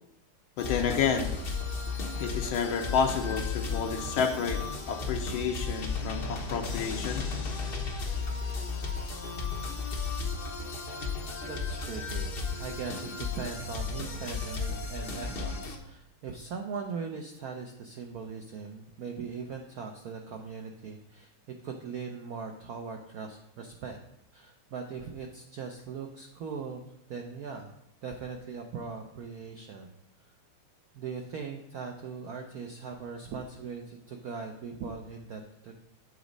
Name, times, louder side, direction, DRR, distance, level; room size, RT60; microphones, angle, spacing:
voice 1, 0.6-1.3 2.2-7.3, left 6 dB, 80° left, 3 dB, 1.5 m, -30 dB
sound 1, 0.6-15.8, left 4 dB, 60° left, 0.6 m, -34 dB
voice 2, 11.4-21.3 21.6-24.0 24.3-26.8 27.1-27.7 28.0-29.9 30.2-30.3 30.9-35.7, right 5 dB, 75° right, 3 dB, 0.8 m, -40 dB
8.2 x 4.0 x 5.1 m, 0.81 s
omnidirectional pair, 2.3 m